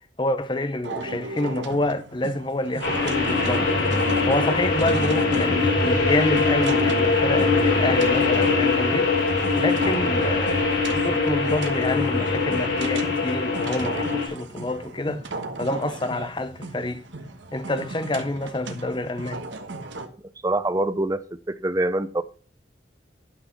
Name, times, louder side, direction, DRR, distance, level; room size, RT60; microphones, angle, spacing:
voice 1, 0.2-3.8 4.3-10.7 11.0-15.3 15.6-17.0 17.5-19.5, left 2 dB, 25° left, 0.7 m, -27 dB
sound 1, 0.8-20.1, right 3 dB, 85° right, 1.4 m, -36 dB
sound 2, 2.8-14.3, left 3 dB, 85° left, 4.2 m, -22 dB
voice 2, 20.4-22.2, right 2 dB, 20° right, 0.5 m, -25 dB
11.5 x 6.1 x 6.0 m
head